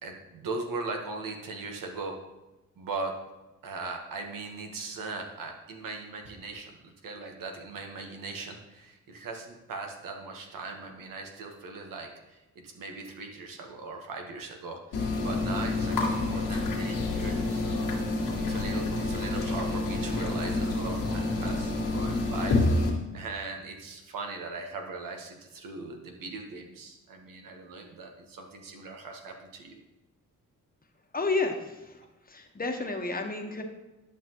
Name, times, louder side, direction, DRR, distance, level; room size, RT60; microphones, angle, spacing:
voice 1, 0.0-2.2 2.8-3.2 3.6-17.9 18.4-22.6 23.1-29.8, right 3 dB, 80° right, 3 dB, 1.3 m, -39 dB
sound 1, 14.9-22.9, left 2 dB, 90° left, 1.8 m, -28 dB
voice 2, 31.1-33.6, left 3 dB, 25° left, 4 dB, 1.1 m, -31 dB
10.5 x 5.8 x 3.0 m, 1.0 s
cardioid pair, 75°, 33 cm